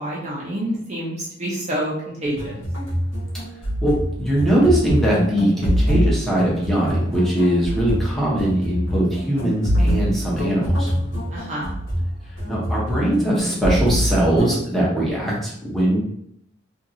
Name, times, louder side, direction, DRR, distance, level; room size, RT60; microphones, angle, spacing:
voice 1, 0.0-1.9 2.2-2.4 11.3-11.7, right 1 dB, 35° right, -5 dB, 0.6 m, -27 dB
sound 1, 2.3-14.6, equal, 80° left, 1.3 m, -24 dB
voice 2, 3.8-10.9 12.5-16.0, right 1 dB, ahead, -6 dB, 0.8 m, -21 dB
2.9 x 2.7 x 2.6 m, 0.72 s
head